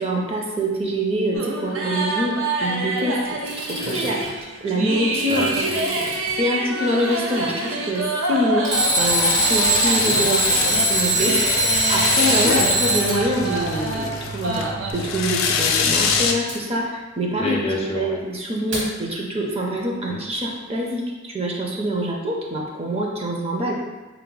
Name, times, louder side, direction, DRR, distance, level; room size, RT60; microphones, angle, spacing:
voice 1, 0.0-3.4 3.9-5.4 6.4-8.7 9.0-11.3 11.6-14.6 14.9-17.6 17.9-23.7, equal, 30° right, -2 dB, 0.6 m, -25 dB
sound 1, 1.3-14.9, right 2 dB, 85° right, 0.6 m, -27 dB
Alarm, 3.3-4.3 4.9-6.3 8.6-13.2 16.5-16.6 18.7-18.8, right 1 dB, 65° right, 1.4 m, -21 dB
voice 2, 3.8-4.1 5.3-6.2 10.0-10.2 12.4-12.7 17.4-18.2 20.1-20.2, left 1 dB, 30° left, -1 dB, 0.5 m, -28 dB
sound 2, 9.0-16.3, left 5 dB, 85° left, 0.4 m, -26 dB
4.5 x 2.1 x 3.9 m, 1.3 s
head